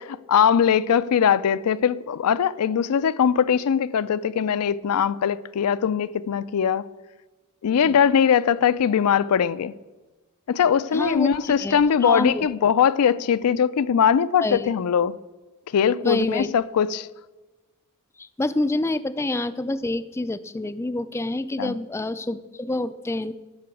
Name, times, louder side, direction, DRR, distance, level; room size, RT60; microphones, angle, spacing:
voice 1, 0.0-6.9 7.6-9.7 10.5-15.2 15.7-17.1 21.6-21.8, left 7 dB, 85° left, 0.4 m, -21 dB
voice 2, 10.9-12.5 14.4-14.7 16.0-16.5 18.2-23.3, left 2 dB, 10° left, 0.3 m, -27 dB
11.5 x 6.0 x 8.3 m
head